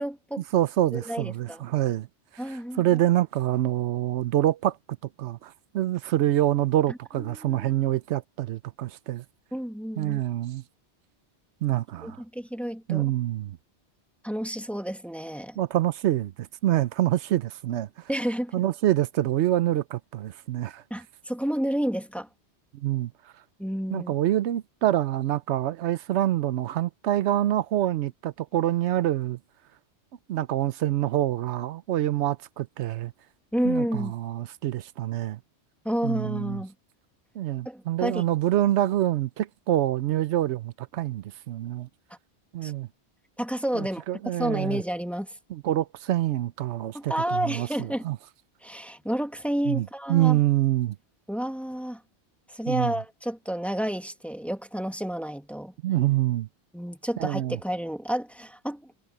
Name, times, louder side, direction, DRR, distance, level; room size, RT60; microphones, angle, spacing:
voice 1, 0.0-0.4 0.9-1.6 2.4-2.9 6.9-7.7 9.5-10.2 12.0-13.1 14.2-15.6 18.1-18.6 20.9-22.3 23.6-24.1 33.5-34.1 35.8-36.7 37.6-38.2 42.6-42.7 43.4-44.0 44.4-45.3 46.9-48.1 48.6-50.4 51.3-52.0 52.5-55.7 56.7-58.8, equal, ahead, 1.7 m, -30 dB
voice 2, 0.5-2.1 2.3-4.8 5.2-9.2 10.0-10.6 11.6-12.2 12.9-13.6 15.6-17.9 18.5-20.8 22.7-23.1 23.9-29.4 30.3-33.1 33.6-35.4 36.0-36.6 37.3-41.9 42.5-42.9 43.7-44.8 45.5-48.2 49.7-51.0 52.7-52.9 55.8-56.5 57.2-57.6, right 13 dB, 90° right, 0.9 m, -26 dB
omnidirectional pair, 1.1 m